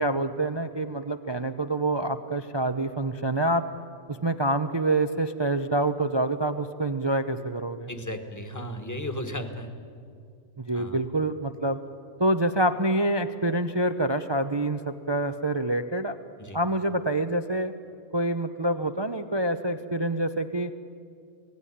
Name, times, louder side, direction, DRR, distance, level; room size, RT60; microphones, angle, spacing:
voice 1, 0.0-3.7 4.1-7.9 10.7-11.8 12.2-16.2 16.5-17.7 18.1-20.7, right 1 dB, 35° right, 8 dB, 0.4 m, -26 dB
voice 2, 7.9-9.7 10.7-11.0 16.4-16.6, equal, 10° left, 6 dB, 1.6 m, -35 dB
26.0 x 18.0 x 9.9 m, 2.3 s
omnidirectional pair, 1.5 m